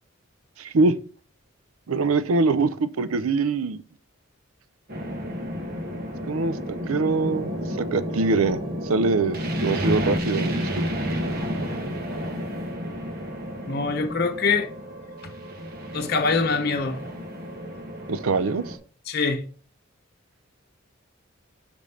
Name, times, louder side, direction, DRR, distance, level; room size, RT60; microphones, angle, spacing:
voice 1, 0.6-1.0 1.9-3.8 6.3-7.5 7.8-8.6 8.9-10.9 18.1-18.8, right 3 dB, 90° right, 0.5 m, -23 dB
sound 1, 4.9-18.8, equal, 45° right, 1.2 m, -31 dB
voice 2, 13.7-14.7 15.9-17.0 19.1-19.4, left 4 dB, 50° left, 0.9 m, -24 dB
5.2 x 5.1 x 5.6 m
head